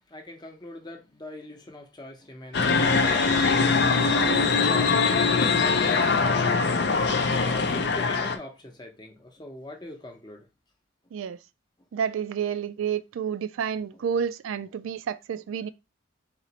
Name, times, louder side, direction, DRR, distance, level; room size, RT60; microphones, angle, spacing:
voice 1, 0.0-6.8 7.2-10.5, left 1 dB, 20° left, 0.7 m, -43 dB
sound 1, 2.5-8.4, left 4 dB, 55° left, 0.5 m, -22 dB
voice 2, 11.9-15.7, right 7 dB, 80° right, 0.3 m, -30 dB
4.3 x 2.9 x 2.8 m
head